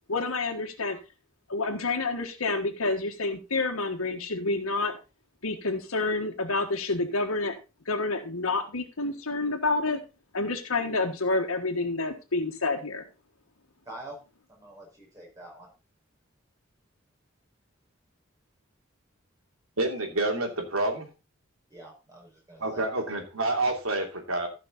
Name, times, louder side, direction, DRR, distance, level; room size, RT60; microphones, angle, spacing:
voice 1, 0.1-1.0 1.5-4.9 5.4-7.5 7.8-10.0 10.3-13.0, left 3 dB, 85° left, 2 dB, 1.5 m, -28 dB
voice 2, 13.9-14.2 14.5-15.7 21.7-23.1, right 1 dB, 15° right, -3 dB, 5.3 m, -46 dB
voice 3, 19.8-21.1 22.6-24.5, right 2 dB, 85° right, 3 dB, 2.9 m, -28 dB
15.5 x 5.8 x 4.1 m, 0.30 s
head